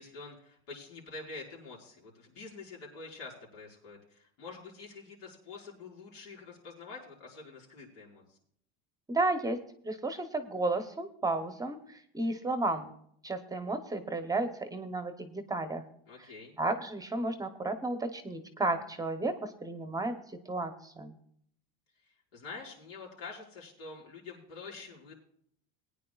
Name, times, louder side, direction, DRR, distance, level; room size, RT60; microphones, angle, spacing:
voice 1, 0.0-8.4 16.1-16.5 22.0-25.2, left 4 dB, 90° left, -3 dB, 5.0 m, -47 dB
voice 2, 9.1-9.6 9.8-12.9 13.2-15.8 16.6-20.2 20.5-21.1, right 2 dB, 10° right, 9 dB, 0.8 m, -33 dB
21.5 x 9.6 x 2.3 m, 0.66 s
cardioid pair, 140°, 31 cm